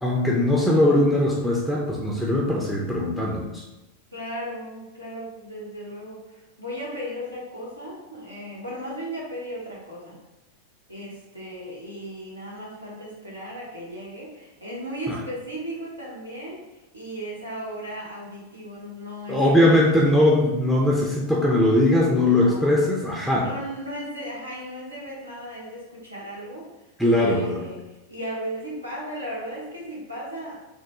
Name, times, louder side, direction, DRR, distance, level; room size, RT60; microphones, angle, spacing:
voice 1, 0.0-3.6 15.1-15.2 19.3-23.5 27.0-27.7, left 1 dB, ahead, -4 dB, 0.5 m, -20 dB
voice 2, 4.1-10.2 10.9-20.0 22.2-22.9 23.4-26.7 27.1-30.6, equal, 85° right, -5 dB, 0.9 m, -36 dB
3.6 x 2.1 x 2.9 m, 1.0 s
figure-of-eight pair, 90°, 0 cm